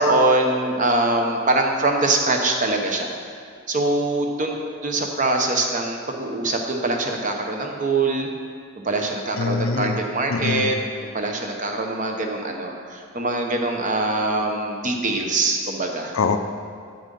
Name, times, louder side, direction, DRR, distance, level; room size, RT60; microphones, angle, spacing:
voice 1, 0.0-3.1 3.7-4.6 4.8-8.3 8.8-10.8 11.0-16.1, right 2 dB, 35° right, 2 dB, 0.9 m, -23 dB
voice 2, 9.4-10.0 10.3-10.7 16.1-16.4, left 4 dB, 70° left, 8 dB, 0.5 m, -23 dB
7.5 x 7.5 x 5.4 m, 2.3 s
head